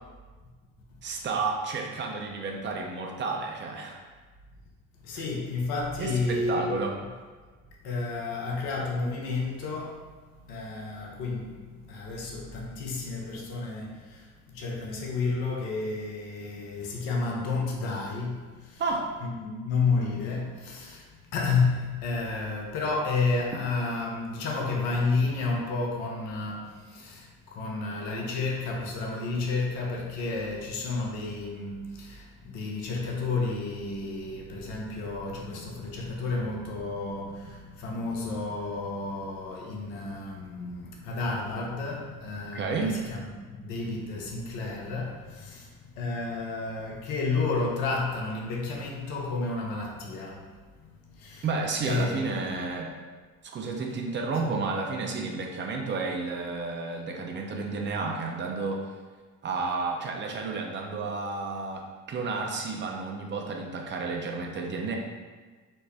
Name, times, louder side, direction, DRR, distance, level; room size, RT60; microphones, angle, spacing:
voice 1, 1.0-4.0 5.1-5.2 6.0-7.0 18.8-19.1 42.5-43.0 51.4-52.9 53.5-58.9 59.4-65.0, right 4 dB, 30° right, 1 dB, 0.6 m, -31 dB
voice 2, 5.0-6.8 7.8-10.1 10.5-18.8 19.2-50.5 50.8-51.5 51.8-52.5 54.4-54.6, left 3 dB, 70° left, -1 dB, 0.8 m, -31 dB
4.1 x 2.1 x 3.4 m, 1.4 s
hypercardioid pair, 60°, 37 cm